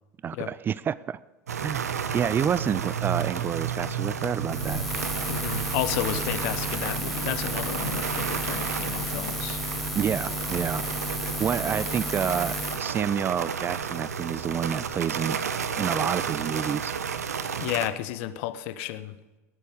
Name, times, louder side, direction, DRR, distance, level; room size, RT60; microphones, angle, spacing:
voice 1, 0.2-1.2 1.6-4.8 9.9-11.1 11.4-15.4 15.8-16.9, right 8 dB, 25° right, 19 dB, 0.3 m, -29 dB
sound 1, 1.5-17.9, right 7 dB, 75° right, 0.8 m, -32 dB
Buzz, 4.5-12.8, left 1 dB, ahead, 1.0 m, -33 dB
voice 2, 5.3-9.6 17.6-19.2, left 13 dB, 55° left, 13 dB, 0.8 m, -32 dB
18.0 x 8.4 x 5.0 m, 1.2 s
figure-of-eight pair, 80°, 8 cm